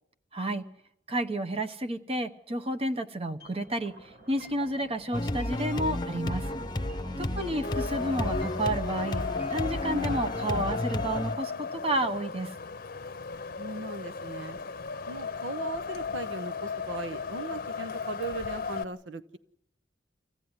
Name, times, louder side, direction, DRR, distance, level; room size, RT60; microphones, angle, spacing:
voice 1, 0.3-0.6 1.1-6.5 7.2-9.2 9.5-12.5, right 1 dB, 30° right, 8 dB, 1.0 m, -31 dB
sound 1, 3.4-11.4, right 1 dB, 55° right, 4.3 m, -50 dB
sound 2, 5.1-11.3, left 1 dB, 25° left, 0.9 m, -32 dB
voice 2, 7.0-7.5 13.6-14.6 15.1-19.4, right 3 dB, 80° right, 12 dB, 0.8 m, -38 dB
Wind, 7.6-18.8, left 5 dB, 50° left, 0.8 m, -35 dB
24.5 x 15.5 x 9.7 m, 0.82 s
head